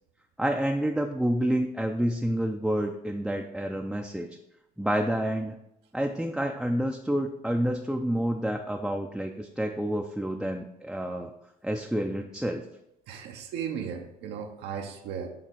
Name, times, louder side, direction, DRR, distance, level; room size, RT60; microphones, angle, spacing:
voice 1, 0.4-4.3 4.8-5.6 5.9-11.3 11.6-12.6, right 1 dB, 5° right, 2 dB, 0.4 m, -28 dB
voice 2, 13.1-15.3, right 7 dB, 80° right, 3 dB, 0.8 m, -36 dB
8.4 x 3.2 x 4.6 m, 0.83 s
cardioid pair, 110°, 17 cm